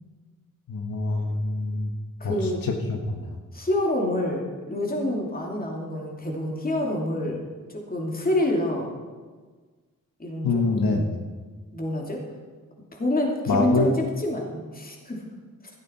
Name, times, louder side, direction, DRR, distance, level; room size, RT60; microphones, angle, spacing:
voice 1, 0.7-1.9 2.2-2.3 2.6-3.4 10.4-11.2 13.5-13.9, left 3 dB, 85° left, 2 dB, 1.6 m, -25 dB
voice 2, 2.2-2.7 3.5-7.4 7.7-8.9 10.2-11.1 11.7-12.2 12.9-13.9 14.2-15.2, left 1 dB, 25° left, 0 dB, 2.6 m, -27 dB
15.0 x 13.0 x 4.3 m, 1.4 s
wide cardioid pair, 135°, 34 cm